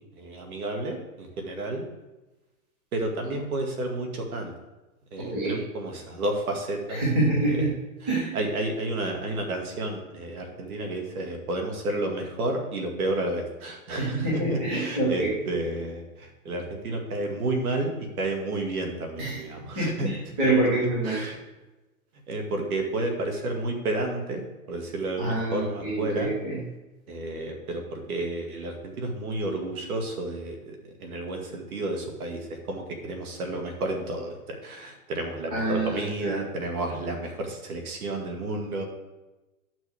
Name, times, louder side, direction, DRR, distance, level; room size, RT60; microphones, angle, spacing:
voice 1, 0.0-1.9 2.9-4.5 5.1-7.0 7.4-7.7 8.0-20.1 20.4-20.5 21.0-21.4 22.3-26.3 27.1-38.9, right 2 dB, 70° right, 2 dB, 2.3 m, -31 dB
voice 2, 5.2-5.6 6.9-7.8 8.1-8.3 14.0-15.3 19.2-19.4 19.7-21.2 25.2-26.6 35.5-36.4, right 2 dB, 5° right, -7 dB, 0.4 m, -26 dB
11.5 x 6.3 x 3.6 m, 1.1 s
hypercardioid pair, 160°, 45 cm